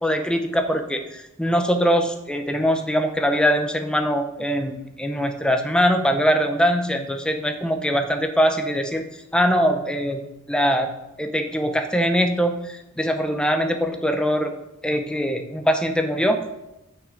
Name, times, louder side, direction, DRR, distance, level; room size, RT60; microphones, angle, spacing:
voice 1, 0.0-10.9 11.2-14.5 14.8-16.4, equal, 5° left, 6 dB, 0.7 m, -22 dB
6.7 x 6.3 x 5.9 m, 0.92 s
head